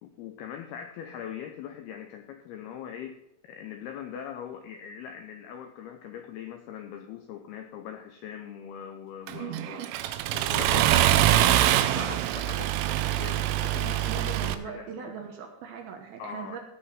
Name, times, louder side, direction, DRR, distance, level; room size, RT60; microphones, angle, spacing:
voice 1, 0.0-3.1 3.5-9.9 10.3-11.6 11.9-15.1 16.2-16.6, left 8 dB, 85° left, 5 dB, 2.2 m, -41 dB
Accelerating revving vroom, 9.3-14.6, right 13 dB, 85° right, 3.1 m, -24 dB
voice 2, 14.1-16.6, right 7 dB, 70° right, 3 dB, 2.5 m, -40 dB
16.0 x 5.7 x 5.6 m, 0.86 s
omnidirectional pair, 5.5 m